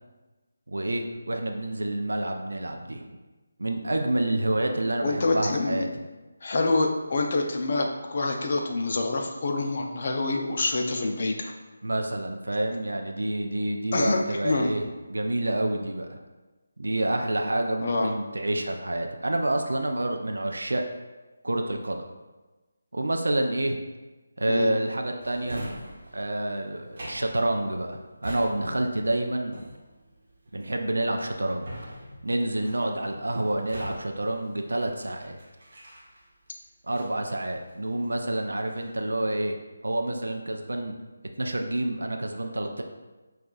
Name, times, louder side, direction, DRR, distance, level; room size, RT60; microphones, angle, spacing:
voice 1, 0.7-3.1 3.6-5.9 11.8-16.2 16.8-20.8 21.4-22.1 22.9-23.8 24.4-25.7 26.1-29.6 30.5-31.7 32.2-35.4 36.8-39.6 39.8-40.9 41.4-42.8, right 1 dB, 75° right, 3 dB, 0.4 m, -28 dB
voice 2, 5.0-5.9 6.4-11.5 13.9-14.7 17.8-18.1 24.5-24.7, left 2 dB, 45° left, 2 dB, 0.5 m, -26 dB
Drawer open or close, 25.2-36.5 36.9-38.2 38.5-39.1, right 1 dB, 45° right, 0.9 m, -44 dB
5.4 x 2.4 x 2.3 m, 1.2 s
figure-of-eight pair, 155°, 0 cm